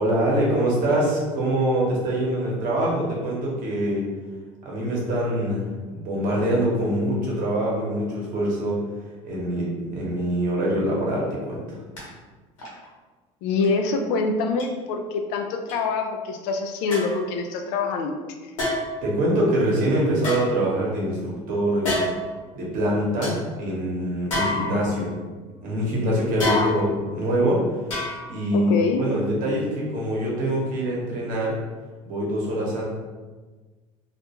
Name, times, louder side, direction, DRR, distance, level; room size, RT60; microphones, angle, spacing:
voice 1, 0.0-4.1 4.6-5.7 5.9-8.8 9.2-11.8 19.0-22.0 22.5-25.1 25.6-27.8 28.3-28.7 29.0-31.5 32.0-32.9, right 1 dB, 55° right, -4 dB, 1.0 m, -24 dB
sound 1, 12.0-12.1 12.6-12.8 13.6-13.7 14.6-14.7 15.7-15.8 16.9-17.3 18.6-19.1 20.2-21.1 21.8-22.3 22.8-22.9 23.2-23.4 24.3-25.1 26.4-27.1 27.9-28.5 28.8-28.9, left 1 dB, 90° left, 0.9 m, -28 dB
voice 2, 13.4-18.1 26.4-26.8 28.5-29.0, left 4 dB, 65° left, 4 dB, 0.4 m, -25 dB
2.4 x 2.1 x 2.9 m, 1.3 s
hypercardioid pair, 75°, 16 cm